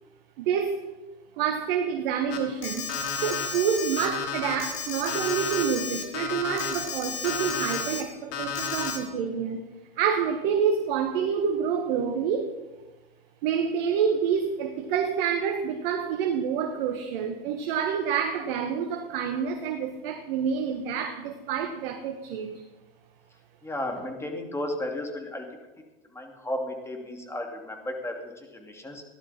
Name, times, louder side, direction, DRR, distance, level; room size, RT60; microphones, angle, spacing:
voice 1, 0.4-0.8 1.4-2.9 3.2-9.6 10.0-12.5 13.4-22.6, right 7 dB, 60° right, 5 dB, 1.4 m, -28 dB
Alarm, 2.3-8.0 8.3-9.0, left 5 dB, 50° left, 2.9 m, -31 dB
voice 2, 23.6-25.5 26.1-29.0, left 1 dB, 10° left, 3 dB, 2.7 m, -34 dB
15.5 x 12.0 x 4.3 m, 1.1 s
hypercardioid pair, 100°, 29 cm